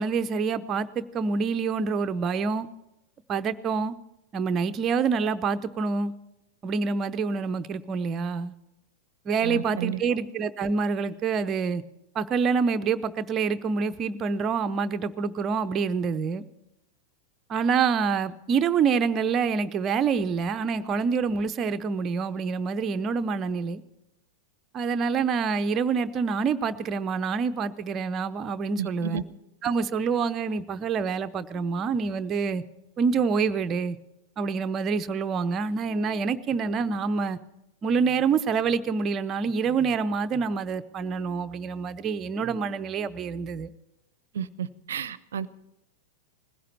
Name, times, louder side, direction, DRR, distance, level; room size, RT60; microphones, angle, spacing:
voice 1, 0.0-2.7 3.3-3.9 4.3-6.1 6.6-8.5 9.3-11.8 12.1-16.4 17.5-23.8 24.7-29.2 29.6-32.6 33.0-34.0 34.4-37.4 37.8-43.7, right 5 dB, 30° right, 0.7 m, -26 dB
voice 2, 9.4-10.0 28.8-29.2 44.3-45.5, right 8 dB, 65° right, 0.6 m, -32 dB
20.0 x 16.0 x 4.2 m
figure-of-eight pair, 90°, 0 cm